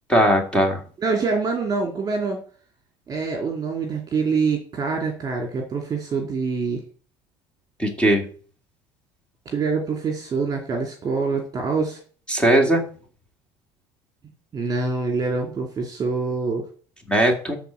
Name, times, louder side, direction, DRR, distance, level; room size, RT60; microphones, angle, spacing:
voice 1, 0.1-0.8 7.8-8.2 12.3-12.8 17.1-17.6, right 1 dB, 10° left, 2 dB, 2.5 m, -18 dB
voice 2, 1.0-2.4 3.1-6.8 9.5-12.0 14.5-16.6, right 4 dB, 30° right, 2 dB, 2.5 m, -25 dB
12.5 x 4.2 x 7.6 m, 0.42 s
cardioid pair, 125°, 13 cm